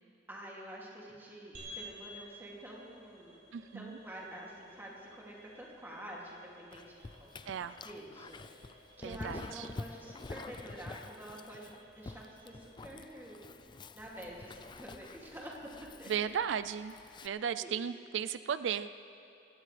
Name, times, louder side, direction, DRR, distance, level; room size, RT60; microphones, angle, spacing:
voice 1, 0.3-3.4 3.7-11.7 12.0-13.4 13.9-15.7 16.0-16.3 17.1-17.7, right 1 dB, 10° right, -4 dB, 2.5 m, -48 dB
sound 1, 1.5-16.2, equal, 55° right, 4.0 m, -56 dB
voice 2, 3.5-4.0 7.5-7.7 9.0-9.7 16.1-16.9 17.2-18.9, right 8 dB, 90° right, 13 dB, 0.3 m, -35 dB
Dog, 6.7-17.3, left 3 dB, 25° left, 0.3 m, -48 dB
21.0 x 17.0 x 3.3 m, 2.8 s
head